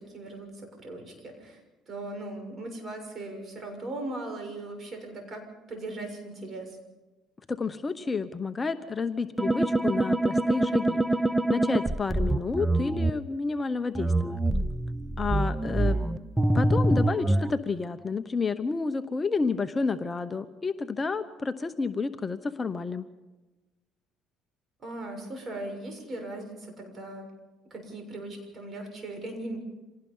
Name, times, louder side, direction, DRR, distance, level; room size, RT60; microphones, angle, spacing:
voice 1, 0.0-1.6 1.9-6.8 15.8-16.1 24.8-27.3 27.7-29.6, right 2 dB, 40° right, 4 dB, 6.7 m, -39 dB
voice 2, 7.5-11.0 11.5-14.4 15.2-16.0 16.5-23.1, left 4 dB, 25° left, 9 dB, 0.9 m, -30 dB
sound 1, 9.4-13.1 13.9-17.5, right 1 dB, 5° right, 0.7 m, -25 dB
26.5 x 18.0 x 5.6 m, 1.1 s
cardioid pair, 100°, 0 cm